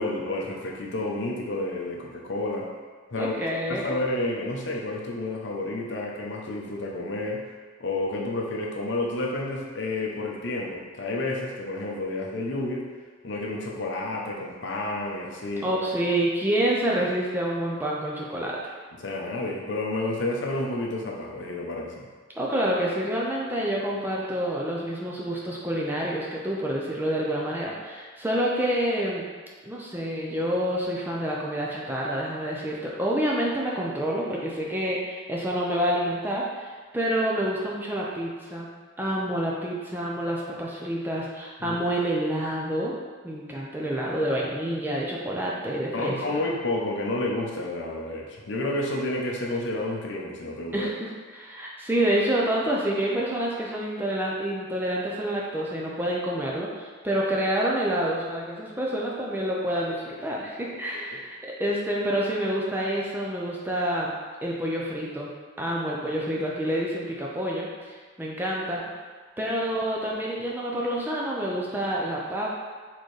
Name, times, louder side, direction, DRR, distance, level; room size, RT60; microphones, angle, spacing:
voice 1, 0.0-2.7 3.1-7.5 7.8-12.9 13.2-15.8 19.0-22.1 41.6-41.8 45.9-50.9 61.1-61.2, left 2 dB, 60° left, -1 dB, 0.7 m, -30 dB
voice 2, 3.2-4.0 15.6-18.7 22.4-29.3 29.6-38.7 39.0-42.9 43.2-46.4 50.7-64.1 64.4-65.3 65.6-68.8 69.4-72.5, right 1 dB, 10° right, -4 dB, 0.5 m, -28 dB
4.3 x 3.7 x 3.2 m, 1.5 s
head